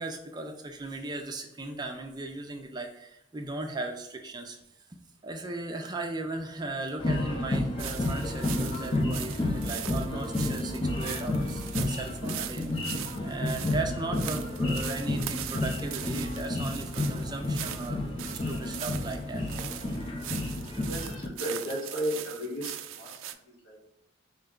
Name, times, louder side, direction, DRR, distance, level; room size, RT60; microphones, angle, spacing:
voice 1, 0.0-4.6 5.2-19.4, right 2 dB, 20° right, 3 dB, 0.4 m, -37 dB
sound 1, 7.0-21.3, left 1 dB, 25° left, 0.5 m, -31 dB
sound 2, 7.8-23.3, right 11 dB, 90° right, 0.3 m, -40 dB
voice 2, 20.9-23.9, equal, 75° left, -2 dB, 1.4 m, -35 dB
4.4 x 2.2 x 3.6 m, 0.84 s
head